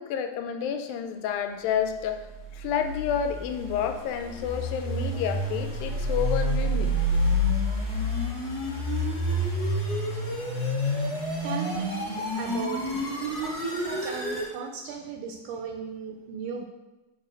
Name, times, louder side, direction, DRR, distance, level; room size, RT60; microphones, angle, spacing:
voice 1, 0.0-2.3 2.6-7.0, left 8 dB, 90° left, 7 dB, 2.4 m, -30 dB
sound 1, 2.3-14.5, equal, 40° left, 1.4 m, -28 dB
voice 2, 10.6-11.2 11.4-13.0 13.4-16.6, right 6 dB, 80° right, 3 dB, 1.9 m, -37 dB
6.4 x 4.8 x 5.1 m, 1.0 s
omnidirectional pair, 4.0 m